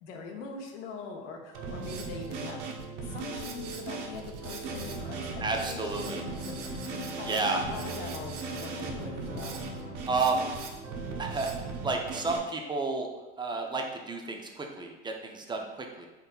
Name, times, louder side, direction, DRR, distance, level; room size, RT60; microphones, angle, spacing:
voice 1, 0.0-2.8 3.1-7.4 7.7-9.6, left 4 dB, 70° left, 2 dB, 0.8 m, -42 dB
Drum kit, 1.5-12.4, right 4 dB, 70° right, 0.7 m, -38 dB
sound 1, 4.6-9.9, left 1 dB, 40° right, 1.3 m, -43 dB
voice 2, 5.4-6.2 7.3-7.6 10.1-10.5 11.2-11.5 11.8-16.1, right 3 dB, 15° right, 2 dB, 0.4 m, -31 dB
4.1 x 3.6 x 2.3 m, 1.1 s
hypercardioid pair, 85°, 37 cm